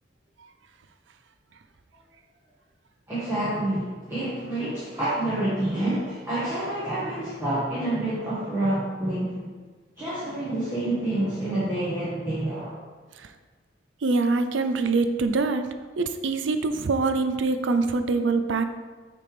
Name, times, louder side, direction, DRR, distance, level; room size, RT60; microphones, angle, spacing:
voice 1, 3.1-9.5 10.0-12.7, right 1 dB, 10° right, -12 dB, 1.5 m, -28 dB
voice 2, 14.0-15.7 16.0-18.6, right 3 dB, 75° right, 9 dB, 0.5 m, -24 dB
6.6 x 3.5 x 5.0 m, 1.3 s
head